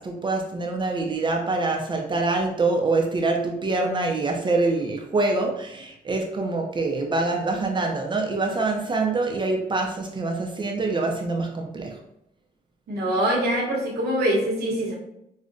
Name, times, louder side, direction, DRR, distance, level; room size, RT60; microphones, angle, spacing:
voice 1, 0.0-12.0, right 3 dB, 30° right, 1 dB, 0.4 m, -25 dB
voice 2, 12.9-14.9, right 1 dB, 75° right, -3 dB, 1.0 m, -24 dB
4.9 x 2.1 x 2.5 m, 0.80 s
cardioid pair, 120°, 16 cm